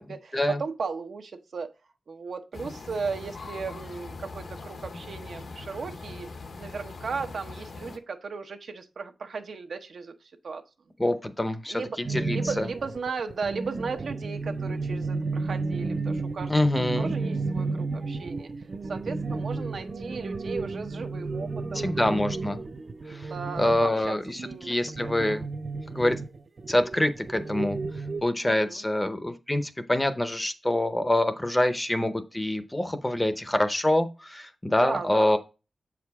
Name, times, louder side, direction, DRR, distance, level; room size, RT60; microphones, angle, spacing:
voice 1, 0.0-1.7 2.1-6.3 6.6-10.1 10.4-10.6 11.7-12.0 12.3-16.5 17.0-18.5 18.9-22.0 23.1-24.2 24.4-25.4 28.4-28.8 34.8-35.4, right 5 dB, 70° right, 0.8 m, -36 dB
sound 1, 2.5-8.0, left 3 dB, 65° left, 0.9 m, -41 dB
voice 2, 11.0-12.7 16.5-17.1 21.7-22.6 23.1-23.3 23.6-25.5 25.9-26.2 26.7-27.8 28.2-35.4, left 1 dB, 15° left, 0.7 m, -26 dB
sound 2, 12.0-28.2, right 3 dB, 40° right, 0.6 m, -32 dB
7.7 x 4.8 x 3.5 m
wide cardioid pair, 135°, 0 cm